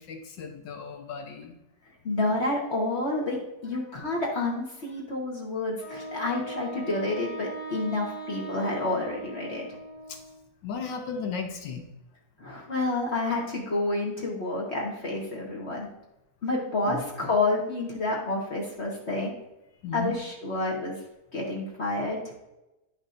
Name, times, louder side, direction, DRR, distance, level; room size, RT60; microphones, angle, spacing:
voice 1, 0.0-1.5 10.1-10.2 10.6-11.9 16.9-17.0 19.8-20.2, left 5 dB, 80° left, 4 dB, 1.6 m, -35 dB
voice 2, 2.0-9.7 12.4-15.9 16.4-19.3 19.9-21.0 21.3-22.3, left 2 dB, 40° left, -3 dB, 1.4 m, -29 dB
Wind instrument woodwind instrument, 5.8-10.4, right 1 dB, 20° left, 1.2 m, -40 dB
10.0 x 5.4 x 2.5 m, 0.95 s
omnidirectional pair, 1.9 m